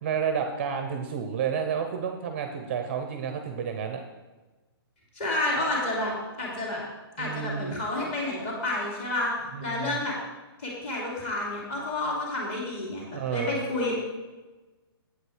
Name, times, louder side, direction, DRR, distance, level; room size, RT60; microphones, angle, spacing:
voice 1, 0.0-4.0 7.2-7.8 9.5-10.0 13.1-13.6, right 7 dB, 30° right, 6 dB, 0.6 m, -30 dB
voice 2, 5.1-6.1 6.4-6.8 7.2-9.3 9.6-10.1 10.6-13.9, left 2 dB, 30° left, -3 dB, 2.7 m, -30 dB
8.1 x 8.0 x 4.9 m, 1.2 s
hypercardioid pair, 175°, 13 cm